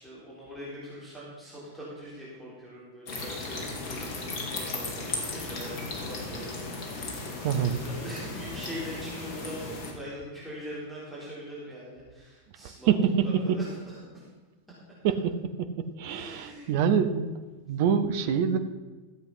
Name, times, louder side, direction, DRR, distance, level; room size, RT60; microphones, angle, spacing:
voice 1, 0.0-6.5 7.5-12.9 13.2-14.2 16.0-16.7, equal, ahead, -8 dB, 3.8 m, -42 dB
sound 1, 3.1-9.9, left 2 dB, 40° left, 2.5 m, -36 dB
voice 2, 7.4-7.8 12.9-13.0 15.0-15.3 15.6-15.7 16.0-17.3 17.7-18.6, right 8 dB, 50° right, 8 dB, 0.9 m, -25 dB
14.0 x 7.9 x 5.6 m, 1.3 s
figure-of-eight pair, 90°, 0 cm